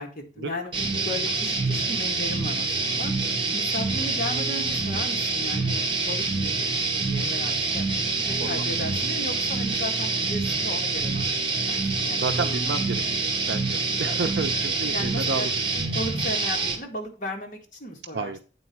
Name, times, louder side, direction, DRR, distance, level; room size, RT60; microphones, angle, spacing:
voice 1, 0.0-3.1 3.5-7.9 8.3-11.4 11.7-12.3 13.9-14.3 14.9-15.5 15.9-18.3, left 1 dB, 45° left, 0 dB, 1.9 m, -36 dB
sound 1, 0.7-16.8, right 3 dB, 30° right, 1.7 m, -26 dB
voice 2, 12.1-15.5 18.1-18.4, right 4 dB, 65° right, 7 dB, 0.6 m, -31 dB
8.7 x 4.1 x 5.9 m, 0.36 s
head